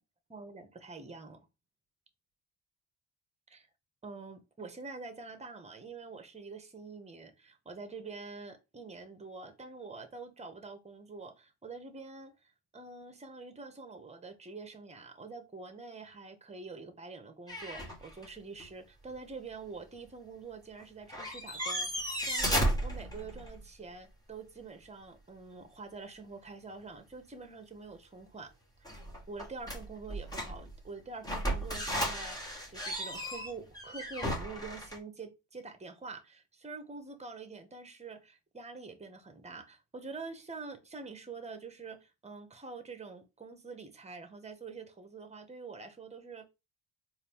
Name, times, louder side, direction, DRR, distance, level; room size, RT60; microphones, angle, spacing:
voice 1, 0.3-1.4 3.5-3.7 4.0-12.3 12.7-28.5 28.8-29.0 29.3-46.5, right 4 dB, 15° right, 0.9 m, -46 dB
sound 1, 17.5-18.3 18.6-18.7 20.8-20.9 21.1-23.6 28.8-30.8 31.2-35.0, equal, 10° left, 1.4 m, -34 dB
3.9 x 2.6 x 3.5 m
supercardioid pair, 85°, 42 cm